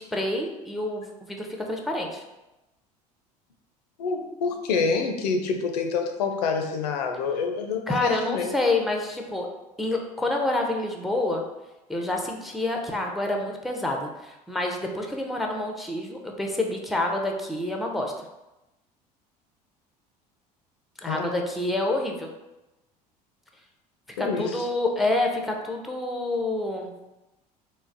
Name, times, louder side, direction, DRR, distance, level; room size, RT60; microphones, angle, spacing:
voice 1, 0.0-2.2 7.9-9.5 9.8-11.4 11.9-18.1 21.0-22.3 24.2-26.9, left 2 dB, ahead, 2 dB, 0.4 m, -28 dB
voice 2, 4.0-8.5 21.1-21.3 24.2-24.7, left 4 dB, 75° left, 4 dB, 0.4 m, -27 dB
3.8 x 2.0 x 2.5 m, 0.97 s
figure-of-eight pair, 65°, 21 cm